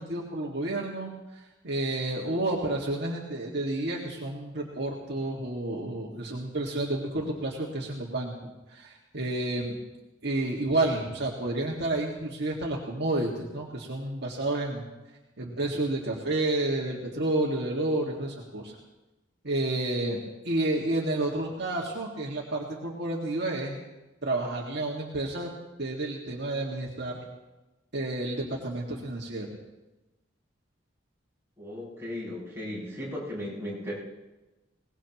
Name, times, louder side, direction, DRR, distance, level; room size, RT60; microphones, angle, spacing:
voice 1, 0.0-8.3 8.7-9.8 10.2-14.9 15.4-18.7 19.4-23.8 24.2-25.5 25.8-27.2 27.9-29.5, right 2 dB, 60° right, -2 dB, 2.0 m, -30 dB
voice 2, 31.6-33.9, left 1 dB, 15° right, -8 dB, 7.4 m, -36 dB
22.5 x 19.0 x 3.0 m, 1.1 s
head